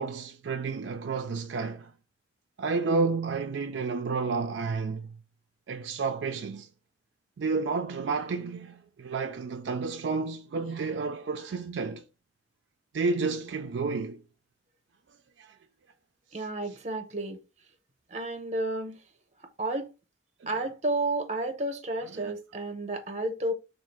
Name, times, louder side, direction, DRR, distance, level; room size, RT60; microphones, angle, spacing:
voice 1, 0.0-1.9 2.6-5.2 5.7-6.7 7.4-12.0 12.9-14.2 15.4-15.5 20.4-20.5 22.1-22.3, right 4 dB, 70° right, 0.4 m, -31 dB
voice 2, 16.3-17.4 18.1-19.0 19.4-19.9 20.5-23.5, right 2 dB, 35° right, 0.7 m, -31 dB
3.6 x 2.4 x 4.5 m
head